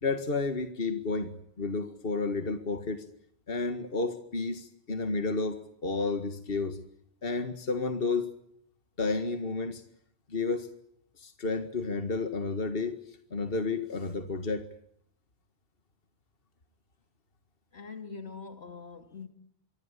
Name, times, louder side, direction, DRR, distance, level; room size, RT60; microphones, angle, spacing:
voice 1, 0.0-3.1 3.5-6.8 7.2-8.3 9.0-9.8 10.3-10.7 11.2-14.7, left 3 dB, 60° left, 2.0 m, -31 dB
voice 2, 17.7-19.3, left 5 dB, 85° left, 2.9 m, -43 dB
27.5 x 24.0 x 8.3 m
omnidirectional pair, 1.1 m